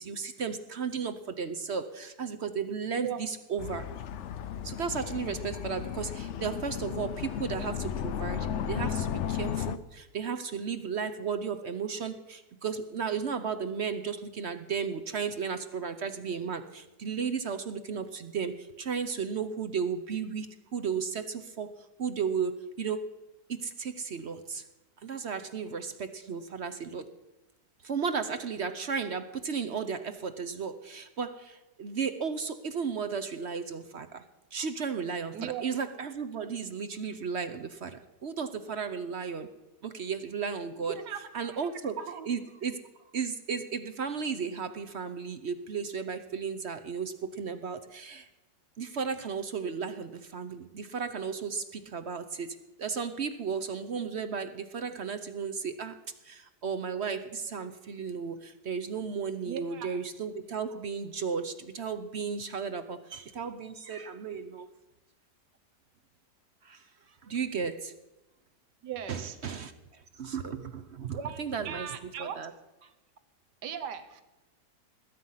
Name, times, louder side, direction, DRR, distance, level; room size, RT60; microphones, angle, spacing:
voice 1, 0.0-3.9 4.6-21.7 22.0-23.1 23.5-24.7 25.0-27.1 27.8-34.2 34.5-39.5 39.8-41.0 41.3-42.8 43.1-48.3 48.8-56.0 56.2-64.7 66.6-66.9 67.2-67.9 69.1-72.5, right 6 dB, 55° right, 9 dB, 0.8 m, -34 dB
sound 1, 3.6-9.8, left 9 dB, 70° left, 0.7 m, -34 dB
voice 2, 40.9-41.6 42.0-42.3 59.5-60.0 68.8-69.3 71.1-72.3 73.6-74.2, right 8 dB, 70° right, 10 dB, 1.7 m, -38 dB
20.0 x 9.2 x 5.6 m, 1.0 s
omnidirectional pair, 1.9 m